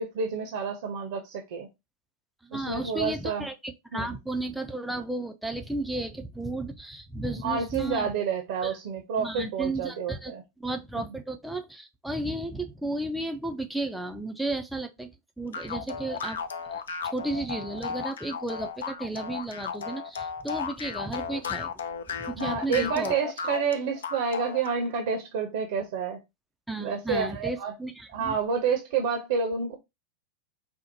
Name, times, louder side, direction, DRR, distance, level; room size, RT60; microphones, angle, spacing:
voice 1, 0.0-1.7 2.5-3.5 3.9-4.2 7.4-10.4 11.0-11.1 22.4-26.2 26.8-27.7 28.1-29.7, right 6 dB, 55° right, 0.6 m, -29 dB
voice 2, 2.4-8.1 8.6-8.8 9.2-15.1 15.4-16.4 16.7-21.7 22.2-23.1 26.7-28.3, right 2 dB, ahead, 0.4 m, -33 dB
sound 1, 15.5-24.8, left 6 dB, 65° left, 0.4 m, -35 dB
4.4 x 2.1 x 2.7 m
figure-of-eight pair, 90°, 0 cm